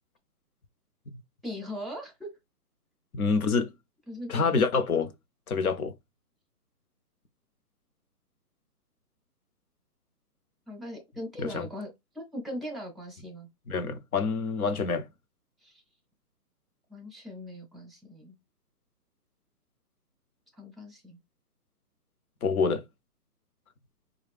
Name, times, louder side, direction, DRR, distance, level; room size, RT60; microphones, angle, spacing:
voice 1, 1.4-2.4 4.1-4.6 10.7-11.9 12.1-13.5 15.6-15.8 16.9-18.3 20.5-21.2, left 1 dB, ahead, 0.4 m, -39 dB
voice 2, 3.1-3.7 4.3-5.1 5.5-5.9 11.4-11.7 13.7-15.1 22.4-22.8, left 4 dB, 65° left, 0.7 m, -27 dB
4.1 x 2.3 x 3.4 m
hypercardioid pair, 180°, 48 cm